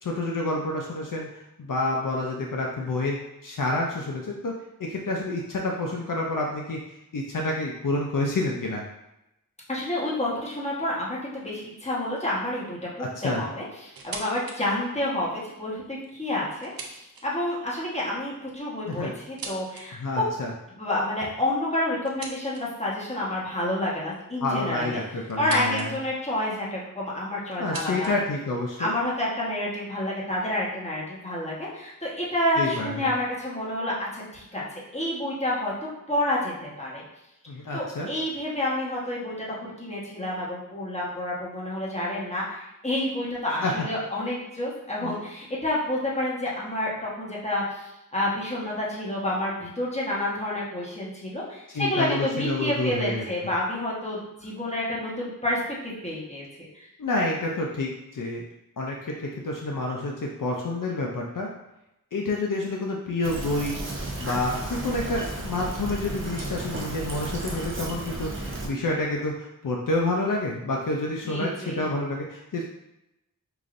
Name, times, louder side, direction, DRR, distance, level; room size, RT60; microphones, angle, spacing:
voice 1, 0.0-3.2 3.4-4.5 4.8-8.8 13.0-13.4 18.9-19.1 19.9-20.5 24.4-26.0 27.6-28.9 32.6-33.1 37.5-38.1 43.6-43.9 45.0-45.2 51.7-53.3 57.0-58.4 58.8-61.5 62.1-63.8 64.2-72.6, left 2 dB, 70° left, -1 dB, 0.5 m, -28 dB
voice 2, 9.7-20.3 20.8-25.0 25.4-28.1 28.8-35.7 36.1-37.0 37.7-56.4 56.7-56.9 71.2-71.8, left 1 dB, 20° left, -6 dB, 1.1 m, -29 dB
sound 1, 13.9-14.6 15.0-15.1 15.8-17.5 18.5-19.9 22.0-22.9 24.1-25.9 26.2-26.7 27.5-28.9, right 4 dB, 85° right, 0.5 m, -42 dB
Fill (with liquid), 63.2-68.7, right 2 dB, 35° right, 0.7 m, -33 dB
4.8 x 2.6 x 2.5 m, 0.89 s
wide cardioid pair, 60°, 34 cm